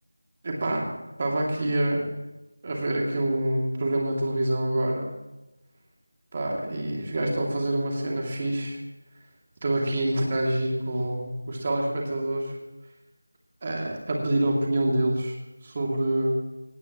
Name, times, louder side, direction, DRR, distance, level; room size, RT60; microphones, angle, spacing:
voice 1, 0.4-0.9 1.2-2.1 2.6-5.1 6.3-8.8 9.6-12.6 13.6-15.4 15.6-16.4, right 1 dB, 30° right, -1 dB, 2.6 m, -26 dB
18.5 x 17.5 x 3.1 m, 1.0 s
figure-of-eight pair, 175°, 0 cm